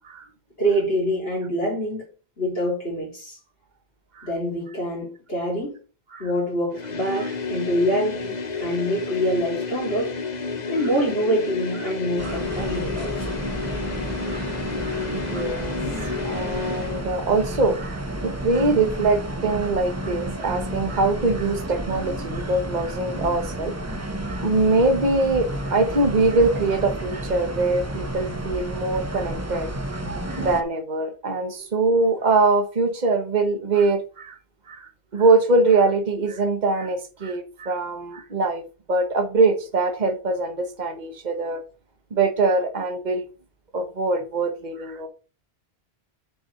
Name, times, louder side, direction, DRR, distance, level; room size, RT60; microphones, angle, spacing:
voice 1, 0.6-2.1 2.4-3.4 4.2-5.8 6.2-10.1 10.7-13.3, equal, 75° left, 3.9 m, -25 dB
sound 1, 6.7-17.0, left 4 dB, 45° left, 1.1 m, -31 dB
sound 2, 12.2-30.6, right 1 dB, 15° right, 1.1 m, -31 dB
voice 2, 14.8-34.4 34.7-38.6 38.9-41.6 42.1-43.3 43.7-45.1, right 3 dB, 45° right, 1.4 m, -23 dB
7.1 x 6.0 x 5.5 m
omnidirectional pair, 1.0 m